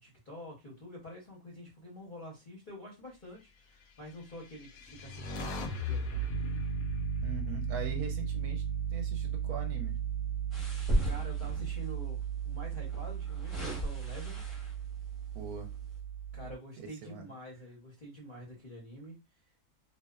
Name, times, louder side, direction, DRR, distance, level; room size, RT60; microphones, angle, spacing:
voice 1, 0.0-6.3 11.0-14.4 16.3-19.1, equal, 50° left, 0.6 m, -47 dB
sound 1, 4.3-8.6, left 1 dB, 70° left, 0.9 m, -39 dB
Piano, 6.3-16.5, right 7 dB, 85° left, 1.2 m, -35 dB
voice 2, 7.2-8.6 8.9-10.0 15.3-15.7 16.8-17.3, right 6 dB, 75° right, 1.0 m, -41 dB
sound 2, 10.5-11.9 12.9-14.9 15.5-15.7, right 1 dB, ahead, 0.4 m, -35 dB
2.7 x 2.1 x 2.2 m
omnidirectional pair, 1.8 m